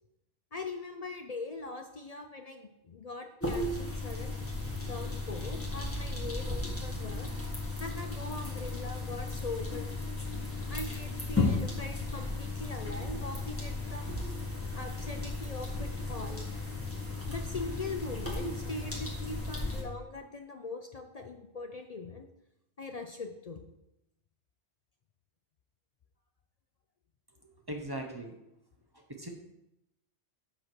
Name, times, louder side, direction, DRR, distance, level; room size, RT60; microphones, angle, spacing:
voice 1, 0.5-4.4 4.8-7.3 7.8-9.9 10.7-14.1 14.7-16.5 17.3-22.3 22.8-23.6, left 3 dB, 50° left, 5 dB, 0.5 m, -41 dB
sound 1, 3.4-19.8, left 2 dB, 10° left, 1.6 m, -35 dB
voice 2, 27.7-28.4 28.9-29.3, right 1 dB, 25° right, 2 dB, 0.8 m, -39 dB
7.8 x 4.3 x 6.0 m, 0.87 s
omnidirectional pair, 1.2 m